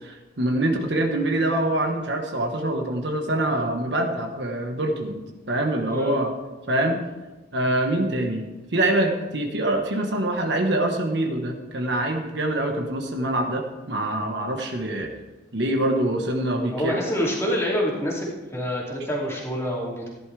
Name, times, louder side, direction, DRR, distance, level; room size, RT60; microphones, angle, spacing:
voice 1, 0.0-5.2 5.5-6.3 6.7-7.0 7.5-8.4 8.7-15.1 15.5-17.0, right 1 dB, 65° right, 3 dB, 1.3 m, -25 dB
voice 2, 5.9-6.2 16.7-20.1, equal, 15° left, -4 dB, 2.8 m, -27 dB
15.5 x 11.0 x 3.4 m, 1.1 s
head